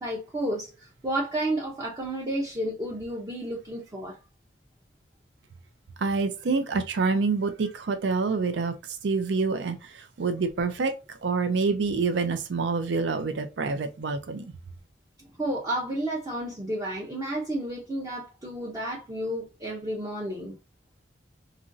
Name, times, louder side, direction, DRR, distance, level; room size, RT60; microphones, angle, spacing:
voice 1, 0.0-4.2 15.4-20.6, right 1 dB, 20° right, 0.5 m, -31 dB
voice 2, 6.0-8.7 9.0-10.9 11.2-14.5, right 4 dB, 80° right, 0.4 m, -27 dB
2.9 x 2.5 x 2.5 m
head